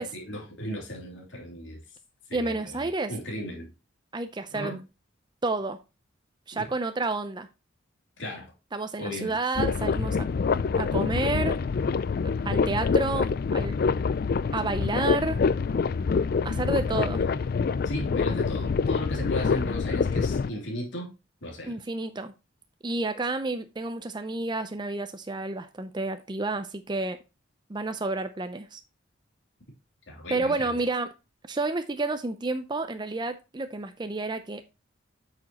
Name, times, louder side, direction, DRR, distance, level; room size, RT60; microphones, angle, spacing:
voice 1, 0.0-1.8 2.3-2.8 3.1-3.7 4.5-4.8 6.6-6.7 8.2-8.5 9.0-9.4 17.2-17.4 17.8-21.1 21.4-21.8 30.1-30.7, left 1 dB, 65° left, 3.0 m, -35 dB
voice 2, 2.3-3.1 4.1-4.8 5.4-5.8 6.5-7.5 8.7-10.3 10.8-11.6 12.4-13.7 14.5-15.4 16.4-17.2 21.6-22.3 22.8-27.2 27.7-28.8 30.3-31.1 31.5-34.6, right 3 dB, 20° right, 0.5 m, -30 dB
sound 1, 9.5-20.5, left 5 dB, 50° left, 0.3 m, -26 dB
8.5 x 6.4 x 2.9 m
head